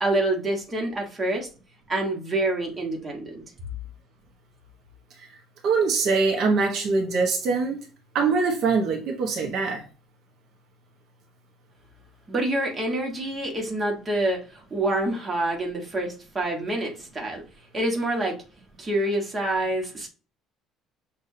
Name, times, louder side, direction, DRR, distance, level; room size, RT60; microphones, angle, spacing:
voice 1, 0.0-1.5 1.9-3.4 12.3-17.4 17.7-18.4 18.8-20.1, right 1 dB, 20° right, 1.3 m, -27 dB
voice 2, 5.6-7.8 8.1-9.8, right 4 dB, 55° right, 1.1 m, -23 dB
6.7 x 2.7 x 2.7 m
cardioid pair, 160°, 0 cm